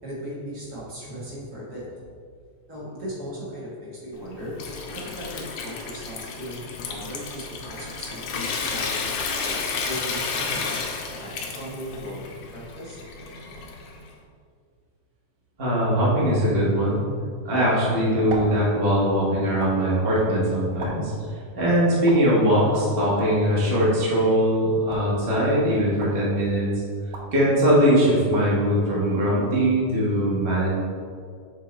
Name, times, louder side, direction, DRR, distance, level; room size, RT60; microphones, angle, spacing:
voice 1, 0.0-2.1 2.7-9.1 9.4-10.8 11.2-13.0, equal, 50° right, -7 dB, 1.2 m, -37 dB
Water tap faucet / Sink (filling or washing) / Trickle dribble, 4.1-14.1, left 4 dB, 75° left, 1.5 m, -32 dB
voice 2, 15.6-17.0 17.4-21.1 21.5-26.7 27.3-30.7, equal, 90° right, -7 dB, 0.5 m, -21 dB
sound 1, 17.6-29.8, right 3 dB, 75° right, 1.6 m, -42 dB
6.6 x 3.7 x 4.1 m, 2.1 s
omnidirectional pair, 3.5 m